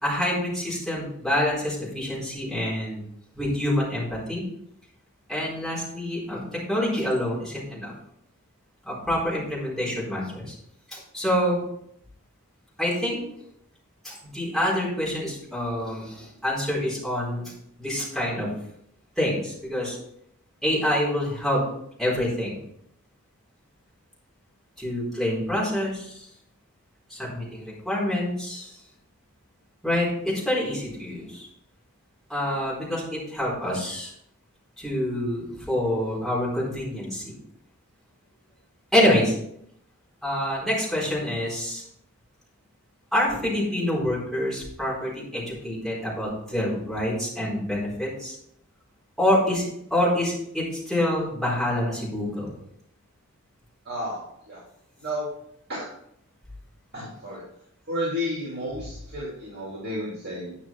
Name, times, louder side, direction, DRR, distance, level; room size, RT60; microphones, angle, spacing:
voice 1, 0.0-3.0 3.3-4.4 5.3-6.4 6.7-7.9 8.8-10.5 10.9-11.6 12.8-13.2 14.0-18.5 19.2-20.0 20.6-21.6 22.0-22.6 24.8-26.3 27.1-28.8 29.8-31.5 32.3-34.1 34.8-37.2 38.9-39.3 40.2-41.8 43.1-48.3 49.2-52.5, left 1 dB, ahead, -7 dB, 4.1 m, -26 dB
voice 2, 53.8-54.6 55.0-55.3 55.7-55.9 56.9-57.4 57.9-60.6, equal, 50° right, -5 dB, 2.7 m, -32 dB
9.7 x 6.0 x 4.5 m, 0.72 s
head